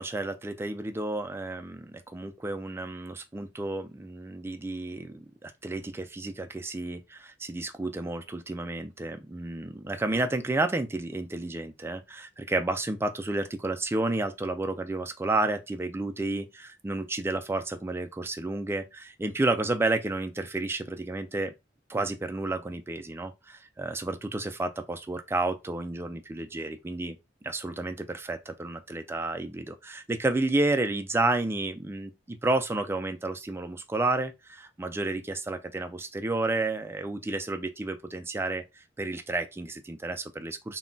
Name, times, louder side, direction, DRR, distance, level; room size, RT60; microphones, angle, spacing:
voice 1, 0.0-21.5 21.9-27.2 27.4-38.6 39.0-40.8, right 2 dB, 15° right, 0.3 m, -31 dB
2.2 x 2.1 x 3.7 m
head